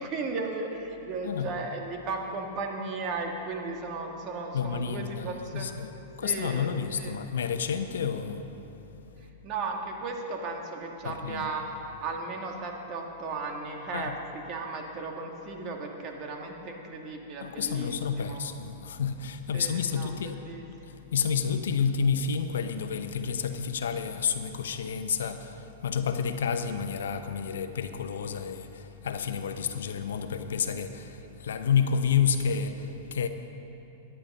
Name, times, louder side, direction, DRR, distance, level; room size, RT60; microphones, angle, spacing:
voice 1, 0.0-5.7 6.2-7.2 9.4-11.7 12.0-14.2 14.5-17.9 18.3-18.4 19.5-20.1 20.4-20.6, right 3 dB, 35° right, 2 dB, 1.8 m, -35 dB
voice 2, 4.5-9.3 11.0-11.5 13.9-14.1 17.4-20.4 20.8-33.3, left 6 dB, 85° left, 8 dB, 0.8 m, -30 dB
14.5 x 10.0 x 5.4 m, 2.9 s
hypercardioid pair, 135°, 0 cm